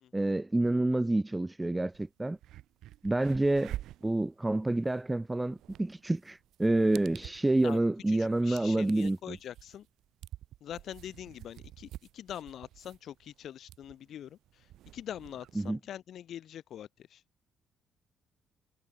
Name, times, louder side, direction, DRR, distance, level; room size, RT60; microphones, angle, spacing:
voice 1, 0.1-2.4 3.0-3.8 4.0-9.4 15.6-15.8, right 2 dB, 15° right, 0.4 m, -28 dB
sound 1, 1.9-2.0 2.3-15.7, right 13 dB, 85° right, 2.7 m, -49 dB
voice 2, 8.1-9.9 10.6-17.2, left 10 dB, 70° left, 1.3 m, -44 dB
cardioid pair, 90°, 0 cm